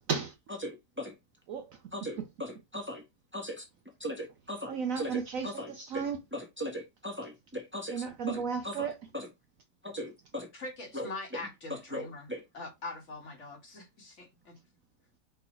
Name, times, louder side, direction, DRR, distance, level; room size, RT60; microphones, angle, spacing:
voice 1, 0.6-1.1 1.9-3.0 3.3-3.6 4.0-5.1 5.4-5.7 5.9-6.0 6.3-7.9 8.3-8.4 8.6-8.7 9.1-9.3 9.9-10.5 11.9-12.4, equal, 5° right, 1.3 m, -38 dB
voice 2, 1.5-1.8 2.2-2.3 4.7-6.2 7.9-9.1, right 6 dB, 65° right, 0.9 m, -34 dB
voice 3, 10.5-14.6, left 2 dB, 45° left, 2.1 m, -43 dB
5.4 x 4.1 x 4.4 m
omnidirectional pair, 1.8 m